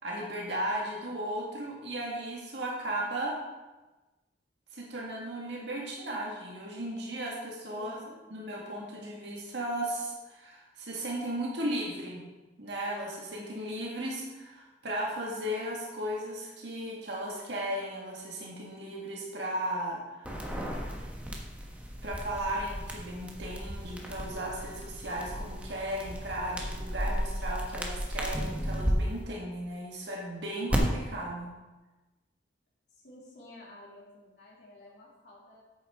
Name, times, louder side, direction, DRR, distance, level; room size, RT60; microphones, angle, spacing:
voice 1, 0.0-3.4 4.7-8.0 8.3-12.2 12.6-20.3 22.0-31.5, right 1 dB, 80° right, -3 dB, 1.7 m, -36 dB
voice 2, 7.7-8.1 32.9-35.6, left 1 dB, 70° left, -6 dB, 2.6 m, -51 dB
sound 1, 20.2-28.9 30.7-30.8, equal, 10° right, 1.2 m, -35 dB
8.6 x 8.5 x 3.6 m, 1.1 s
head